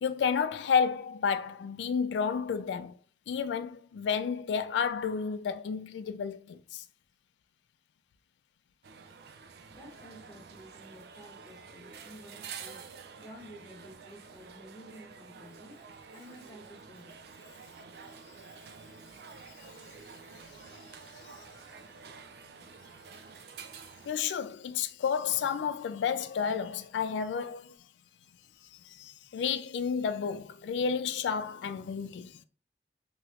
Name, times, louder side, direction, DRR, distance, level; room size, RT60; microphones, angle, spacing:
voice 1, 0.0-3.0 3.3-6.8 19.6-19.7 24.0-27.8 28.9-32.4, left 6 dB, 85° left, 0.3 m, -31 dB
sound 1, 8.8-24.1, right 5 dB, 60° right, 0.4 m, -49 dB
voice 2, 9.7-12.9 13.2-15.8 16.1-17.6, equal, 20° left, 0.9 m, -52 dB
3.0 x 2.8 x 2.3 m
head